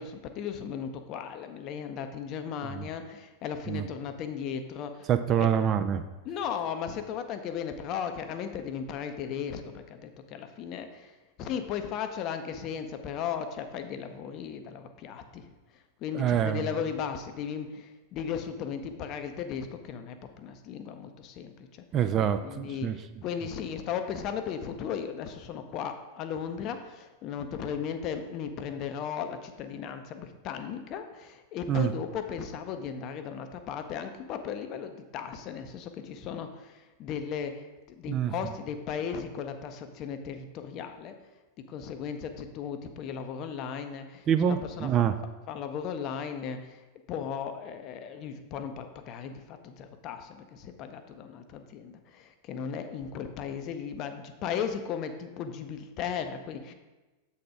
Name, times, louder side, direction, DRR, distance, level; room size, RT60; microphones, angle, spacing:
voice 1, 0.0-5.1 5.4-5.5 6.2-15.5 15.7-21.8 22.4-37.7 38.0-41.2 41.7-45.1 45.5-56.7, left 7 dB, 40° left, 8 dB, 0.6 m, -36 dB
voice 2, 5.1-6.0 16.1-16.6 21.9-23.0 31.7-31.9 38.1-38.3 44.3-45.1, right 9 dB, 30° right, 9 dB, 0.3 m, -25 dB
7.5 x 4.2 x 4.8 m, 1.2 s
figure-of-eight pair, 90°, 0 cm